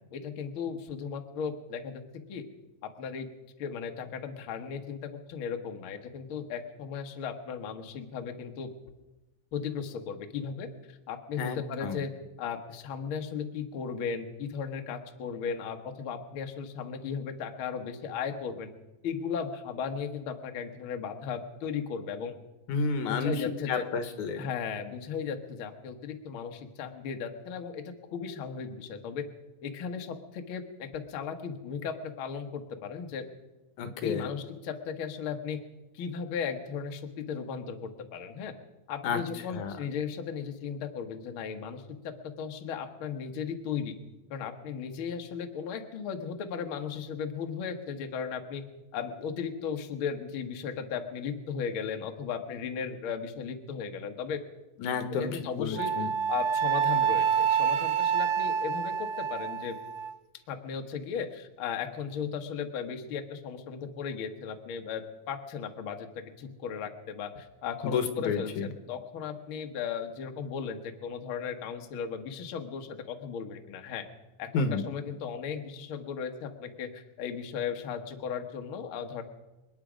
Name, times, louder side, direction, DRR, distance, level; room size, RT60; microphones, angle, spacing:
voice 1, 0.1-2.4 2.8-3.3 3.6-8.7 9.5-12.1 12.4-18.7 19.0-22.4 23.1-23.8 24.4-29.2 29.6-33.3 34.0-35.6 35.9-38.5 38.9-43.9 44.3-48.6 48.9-54.4 55.2-59.8 60.5-74.1 74.4-79.2, left 6 dB, 55° left, 5 dB, 1.7 m, -36 dB
voice 2, 11.4-12.0 22.7-24.5 33.8-34.3 39.0-39.2 39.5-39.7 54.8-56.1 67.8-68.7 74.5-74.8, left 5 dB, 75° left, 9 dB, 2.6 m, -31 dB
Wind instrument woodwind instrument, 55.8-60.1, right 8 dB, 75° right, 2.1 m, -27 dB
27.0 x 9.7 x 5.1 m, 1.1 s
omnidirectional pair, 3.6 m